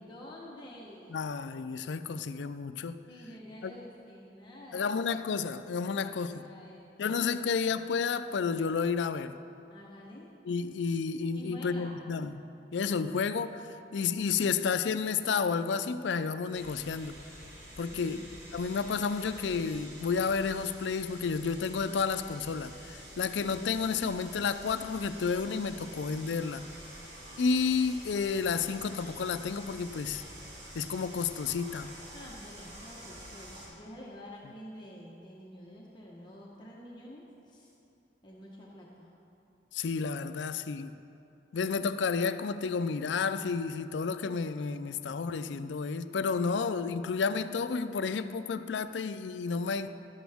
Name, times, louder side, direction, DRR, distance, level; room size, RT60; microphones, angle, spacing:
voice 1, 0.0-1.3 3.1-5.0 5.9-7.7 9.7-10.3 11.3-11.9 17.9-18.6 32.1-37.7 38.2-39.1, left 1 dB, 25° left, -4 dB, 1.1 m, -49 dB
voice 2, 1.1-3.0 3.6-3.7 4.7-6.4 7.0-9.4 10.5-12.4 12.7-17.1 17.8-18.2 18.5-26.6 27.4-30.2 30.7-31.9 39.7-40.9 41.5-49.9, left 5 dB, 80° left, 12 dB, 0.4 m, -31 dB
sound 1, 16.5-33.7, right 1 dB, 70° right, 2.9 m, -48 dB
12.5 x 12.0 x 3.5 m, 2.8 s
head